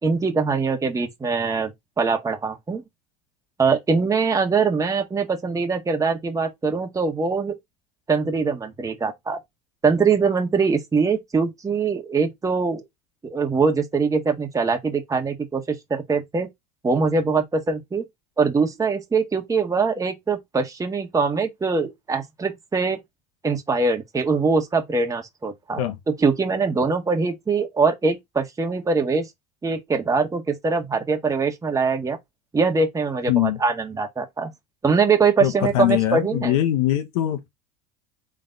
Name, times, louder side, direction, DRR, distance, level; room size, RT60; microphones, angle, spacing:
voice 1, 0.0-1.7 2.0-2.8 3.6-7.6 8.1-9.4 9.8-12.8 13.3-16.5 16.8-18.1 18.4-23.0 23.4-25.8 26.2-29.3 29.6-32.2 32.5-34.5 34.8-36.6, right 4 dB, 15° right, 1.3 m, -22 dB
voice 2, 33.3-33.6 35.4-37.5, left 13 dB, 75° left, 0.9 m, -22 dB
3.8 x 3.2 x 3.9 m
hypercardioid pair, 85°, 19 cm